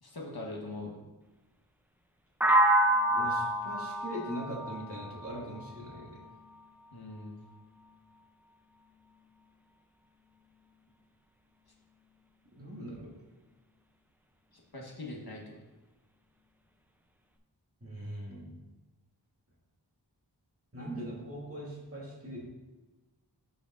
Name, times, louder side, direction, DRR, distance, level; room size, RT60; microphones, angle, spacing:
voice 1, 0.0-1.0 6.9-7.3 14.5-15.6, left 2 dB, 60° left, -1 dB, 1.5 m, -42 dB
sound 1, 2.4-6.3, right 1 dB, 5° right, 0.6 m, -28 dB
voice 2, 3.1-6.2 12.6-13.1 17.8-18.5 20.7-22.5, right 1 dB, 35° right, -5 dB, 2.2 m, -41 dB
8.2 x 6.6 x 2.6 m, 1.2 s
wide cardioid pair, 50°, 42 cm